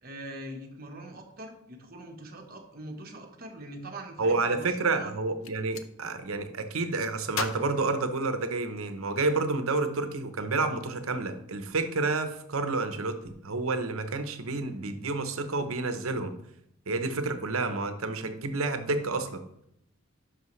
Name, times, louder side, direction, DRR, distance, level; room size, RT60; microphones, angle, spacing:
voice 1, 0.0-5.1, right 1 dB, 45° right, 3 dB, 1.3 m, -42 dB
voice 2, 4.2-16.3 16.9-19.4, right 3 dB, 80° right, 8 dB, 0.9 m, -29 dB
Gunshot gunfire, 5.2-5.9 7.3-8.8, left 6 dB, 70° left, 0.6 m, -38 dB
11.5 x 5.8 x 3.2 m, 0.76 s
head